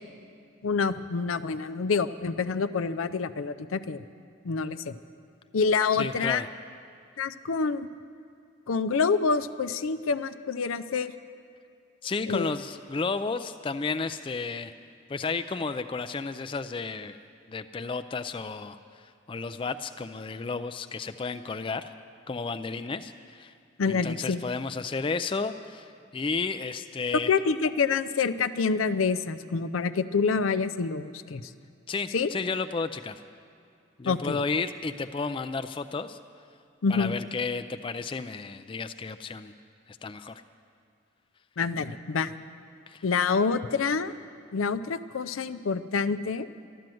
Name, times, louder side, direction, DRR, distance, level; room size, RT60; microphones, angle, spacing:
voice 1, 0.6-4.1 4.4-4.9 5.5-6.4 7.2-7.9 8.7-11.1 12.3-12.5 23.8-24.4 27.3-31.5 32.1-32.3 34.1-34.4 36.8-37.2 41.6-42.3 43.0-44.1 44.5-46.5, left 5 dB, 90° left, 11 dB, 0.5 m, -27 dB
voice 2, 5.9-6.5 12.0-14.7 15.1-17.2 17.5-21.9 22.3-23.5 23.9-27.3 31.9-33.2 34.0-36.2 36.9-39.5 39.9-40.4 42.9-43.0, left 4 dB, 25° left, 10 dB, 0.3 m, -32 dB
13.0 x 12.0 x 7.7 m, 2.4 s
head